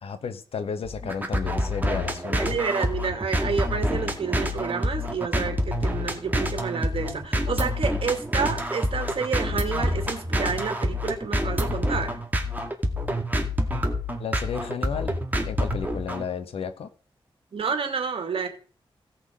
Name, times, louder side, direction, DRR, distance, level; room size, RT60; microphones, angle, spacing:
voice 1, 0.0-2.6 14.2-15.1 15.5-16.9, left 6 dB, 85° left, 10 dB, 1.3 m, -32 dB
sound 1, 0.8-16.2, equal, 20° right, 2.1 m, -27 dB
voice 2, 2.3-12.2 17.5-18.5, right 5 dB, 70° right, 6 dB, 2.5 m, -29 dB
17.0 x 6.0 x 5.1 m, 0.40 s
wide cardioid pair, 90°, 10 cm